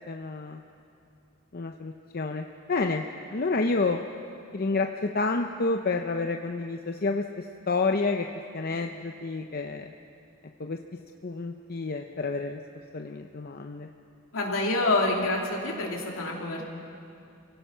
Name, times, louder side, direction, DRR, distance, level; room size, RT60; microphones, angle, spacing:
voice 1, 0.1-0.6 1.5-3.0 3.3-4.0 4.5-8.3 8.5-9.9 10.6-10.8 11.2-12.6 12.9-13.9, left 3 dB, 45° left, 4 dB, 0.7 m, -29 dB
voice 2, 14.3-16.6, left 2 dB, 75° left, -1 dB, 3.2 m, -27 dB
28.0 x 17.0 x 5.6 m, 2.5 s
head